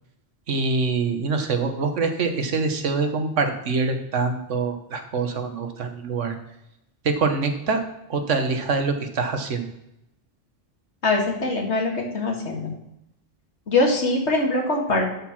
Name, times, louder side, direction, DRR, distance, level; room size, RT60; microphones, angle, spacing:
voice 1, 0.5-6.3 7.0-7.8 8.1-9.7, right 4 dB, 80° right, 6 dB, 1.5 m, -24 dB
voice 2, 11.0-12.7 13.7-15.1, left 2 dB, 65° left, 1 dB, 2.1 m, -22 dB
12.0 x 4.7 x 5.8 m, 0.85 s
omnidirectional pair, 1.2 m